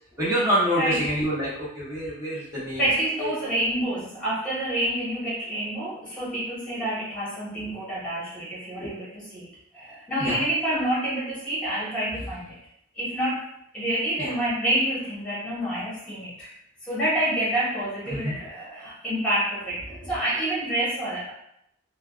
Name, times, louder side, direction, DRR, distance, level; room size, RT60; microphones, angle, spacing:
voice 1, 0.2-2.8 3.2-3.3 8.8-8.9 10.2-10.4 14.2-14.3 18.1-18.4, equal, 15° right, -9 dB, 1.0 m, -26 dB
voice 2, 2.8-9.5 9.7-12.6 12.9-16.5 16.8-21.3, right 1 dB, 5° left, -9 dB, 1.2 m, -28 dB
2.7 x 2.2 x 2.4 m, 0.75 s
head